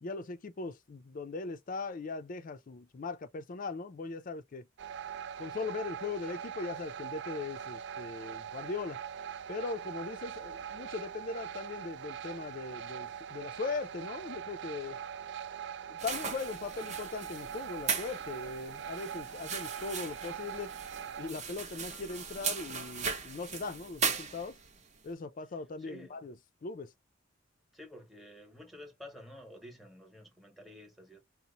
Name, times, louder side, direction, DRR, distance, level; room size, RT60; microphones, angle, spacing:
voice 1, 0.0-4.7 5.4-9.0 9.5-15.0 15.9-20.7 21.2-24.6 25.0-26.3 26.6-26.9, left 4 dB, 40° left, 0.4 m, -39 dB
sound 1, 4.8-21.3, right 8 dB, 60° right, 0.3 m, -42 dB
sound 2, 16.0-24.8, right 6 dB, 35° right, 0.8 m, -38 dB
voice 2, 25.8-26.3 27.7-31.2, left 1 dB, ahead, 1.0 m, -50 dB
2.9 x 2.1 x 3.8 m
head